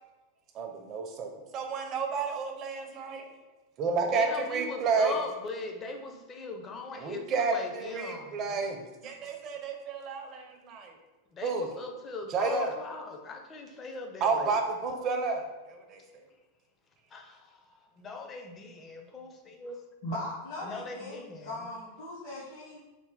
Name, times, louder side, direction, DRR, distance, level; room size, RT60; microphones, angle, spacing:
voice 1, 0.5-3.3 3.8-5.1 6.9-10.9 11.4-11.7 12.3-12.7 14.2-16.0, right 4 dB, 35° right, 4 dB, 0.5 m, -31 dB
voice 2, 4.1-8.6 11.3-14.6 17.1-17.4 18.0-19.8 20.6-21.5, left 3 dB, 25° left, 4 dB, 0.4 m, -39 dB
voice 3, 20.0-22.8, left 1 dB, 55° left, -5 dB, 0.9 m, -39 dB
3.2 x 2.2 x 3.6 m, 1.2 s
figure-of-eight pair, 90°, 0 cm